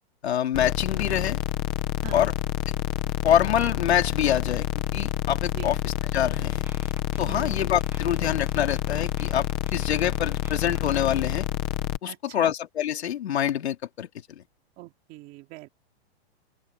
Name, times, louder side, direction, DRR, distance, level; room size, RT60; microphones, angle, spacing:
voice 1, 0.2-1.4 2.1-2.3 2.7-2.8 3.2-4.7 4.9-6.6 7.2-9.5 9.7-11.5 12.0-14.1, left 10 dB, 85° left, 3.4 m, -25 dB
sound 1, 0.5-12.0, left 12 dB, 10° left, 0.3 m, -28 dB
sound 2, 6.3-11.4, right 4 dB, 5° right, 6.9 m, -50 dB
voice 2, 7.3-7.6 12.1-12.5 14.8-15.7, right 19 dB, 25° right, 2.7 m, -42 dB
open air
hypercardioid pair, 165°, 32 cm